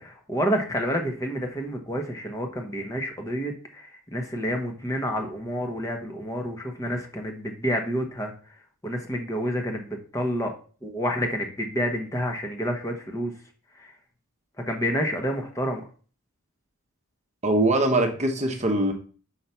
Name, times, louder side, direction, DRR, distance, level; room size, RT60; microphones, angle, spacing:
voice 1, 0.0-8.3 8.8-10.5 10.8-13.3 13.8-13.9 14.7-15.8, equal, 15° left, 3 dB, 1.0 m, -29 dB
voice 2, 17.4-18.9, right 1 dB, 30° right, 4 dB, 0.9 m, -22 dB
5.8 x 4.7 x 5.6 m, 0.40 s
head